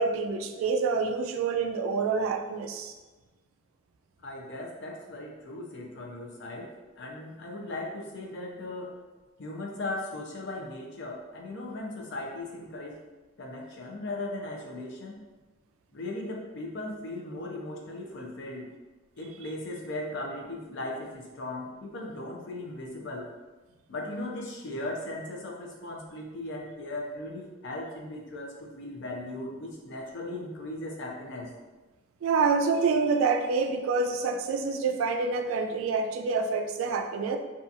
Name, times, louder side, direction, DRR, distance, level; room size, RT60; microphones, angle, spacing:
voice 1, 0.0-2.9 32.2-37.4, right 4 dB, 80° right, 6 dB, 0.3 m, -27 dB
voice 2, 4.2-6.7 7.0-8.9 9.4-13.0 13.4-15.2 15.9-18.7 19.2-23.3 23.9-31.5, left 2 dB, 60° left, -1 dB, 0.5 m, -37 dB
2.7 x 2.3 x 2.5 m, 1.2 s
head